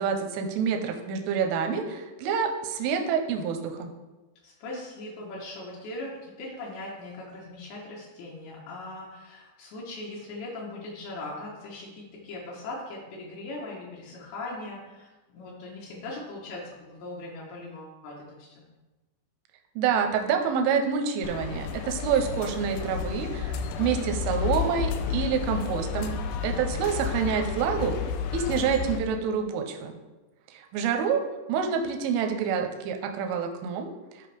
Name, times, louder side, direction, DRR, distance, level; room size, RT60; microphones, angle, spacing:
voice 1, 0.0-3.9 19.8-26.1 26.4-28.0 28.3-29.9 30.5-31.2 31.5-33.9, right 7 dB, 85° right, 5 dB, 3.3 m, -27 dB
voice 2, 4.4-18.7 26.3-26.9, left 2 dB, 70° left, -4 dB, 3.2 m, -40 dB
sound 1, 21.2-29.0, left 6 dB, 90° left, 2.3 m, -31 dB
13.0 x 5.3 x 3.4 m, 1.1 s
omnidirectional pair, 5.5 m